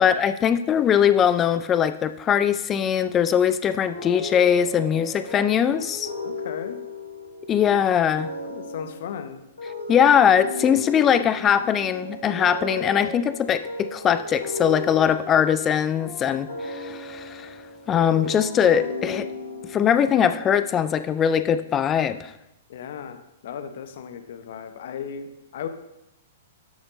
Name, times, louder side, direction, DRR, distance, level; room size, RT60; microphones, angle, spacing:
voice 1, 0.0-6.1 7.5-8.3 9.9-17.5 17.9-19.3 19.7-22.3, left 8 dB, 20° left, 12 dB, 0.4 m, -21 dB
sound 1, 3.9-21.1, left 1 dB, 75° left, 2.1 m, -35 dB
voice 2, 6.2-6.8 8.4-9.4 22.7-25.7, left 7 dB, 55° left, 8 dB, 0.8 m, -36 dB
12.0 x 4.4 x 4.1 m, 0.86 s
figure-of-eight pair, 105°, 0 cm